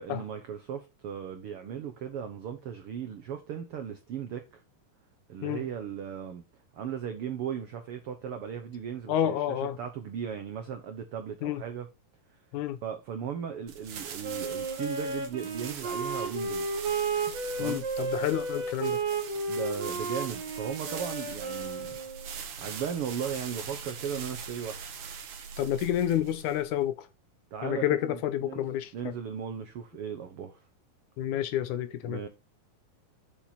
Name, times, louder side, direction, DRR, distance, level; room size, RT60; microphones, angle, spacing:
voice 1, 0.0-4.6 5.3-6.4 6.7-11.9 12.8-16.8 17.5-17.8 19.5-22.0 22.6-24.8 27.5-28.6 28.9-30.6 32.0-32.3, right 8 dB, 80° right, 1.2 m, -37 dB
voice 2, 9.1-9.8 11.4-11.6 12.5-12.8 17.6-19.0 25.6-27.1 27.6-29.1 31.2-32.2, left 11 dB, 75° left, 2.0 m, -29 dB
sound 1, 13.7-26.8, right 6 dB, 65° right, 2.9 m, -42 dB
Wind instrument woodwind instrument, 14.2-22.3, right 3 dB, 50° right, 3.7 m, -33 dB
7.3 x 7.3 x 4.1 m
omnidirectional pair, 3.9 m